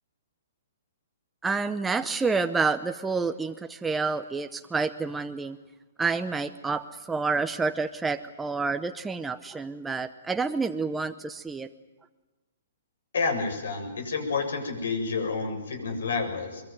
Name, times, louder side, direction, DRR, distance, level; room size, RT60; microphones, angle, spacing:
voice 1, 1.4-5.6 6.0-11.7, right 4 dB, 5° right, 6 dB, 0.8 m, -29 dB
voice 2, 13.1-16.6, left 4 dB, 80° left, 7 dB, 7.6 m, -29 dB
24.0 x 22.5 x 9.4 m, 1.1 s
hypercardioid pair, 155°, 0 cm